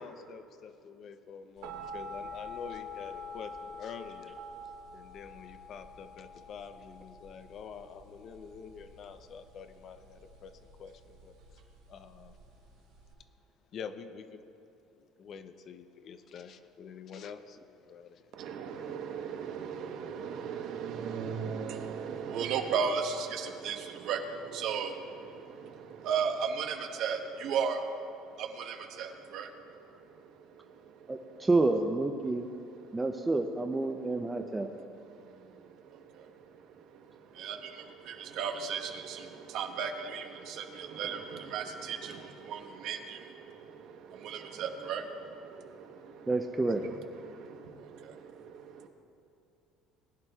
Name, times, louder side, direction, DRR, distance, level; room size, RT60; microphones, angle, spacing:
voice 1, 0.0-4.3 4.9-10.5 10.8-11.3 11.9-12.3 13.7-14.4 15.2-17.6 17.8-18.2, left 6 dB, 40° left, 10 dB, 0.5 m, -46 dB
sound 1, 1.6-13.1, left 2 dB, 80° right, 2.0 m, -46 dB
voice 2, 18.3-31.3 32.9-33.0 34.7-46.3 46.8-46.9 47.2-48.9, right 6 dB, 55° right, 5 dB, 0.9 m, -37 dB
voice 3, 31.1-32.5 32.9-34.7 46.3-46.8, right 2 dB, 10° right, 4 dB, 0.4 m, -29 dB
20.0 x 11.5 x 2.3 m, 2.6 s
cardioid pair, 160°, 0 cm